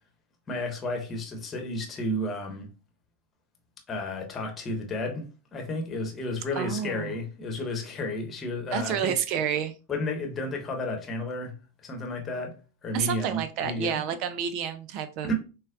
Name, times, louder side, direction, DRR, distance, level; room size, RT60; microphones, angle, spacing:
voice 1, 0.5-2.7 3.9-9.1 9.9-11.5 11.8-14.0 15.3-15.4, left 1 dB, 20° left, 1.1 m, -32 dB
voice 2, 6.6-7.2 8.7-9.7 12.9-15.3, right 8 dB, 40° right, 0.5 m, -29 dB
6.3 x 2.2 x 2.5 m
figure-of-eight pair, 90°, 0 cm